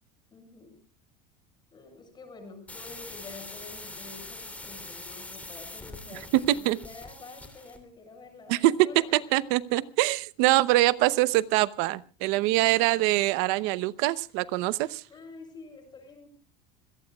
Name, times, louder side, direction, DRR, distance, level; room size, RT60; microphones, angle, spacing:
voice 1, 0.3-0.8 1.7-9.5 12.2-12.8 15.1-16.3, left 3 dB, 25° left, 4 dB, 7.2 m, -48 dB
sound 1, 2.7-7.8, left 2 dB, 10° left, 3.1 m, -43 dB
voice 2, 6.3-6.8 8.5-15.0, right 17 dB, 70° right, 17 dB, 0.8 m, -24 dB
26.5 x 17.5 x 2.3 m, 0.34 s
supercardioid pair, 130°, 17 cm